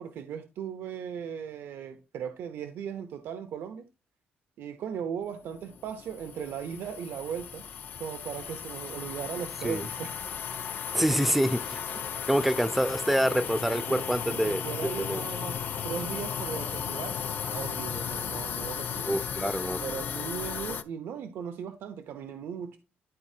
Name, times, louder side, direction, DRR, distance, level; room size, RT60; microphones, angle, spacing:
voice 1, 0.0-3.9 4.6-7.7 8.0-10.2 13.9-19.2 19.8-22.8, right 8 dB, 75° right, 0.8 m, -38 dB
sound 1, 5.7-20.8, left 8 dB, 50° left, 0.6 m, -35 dB
voice 2, 10.9-11.8 12.3-14.6 15.0-15.2 19.0-19.8, equal, 5° right, 0.5 m, -26 dB
12.5 x 4.1 x 2.8 m
cardioid pair, 160°, 4 cm